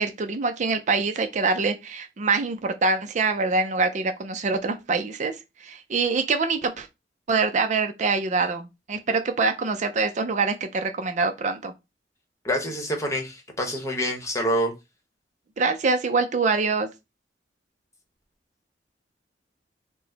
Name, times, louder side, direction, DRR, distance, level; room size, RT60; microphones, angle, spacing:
voice 1, 0.0-6.9 7.3-11.7 15.6-16.9, right 4 dB, 45° right, 0.4 m, -25 dB
voice 2, 12.4-14.7, equal, 20° left, 1.0 m, -26 dB
4.4 x 2.1 x 3.9 m
head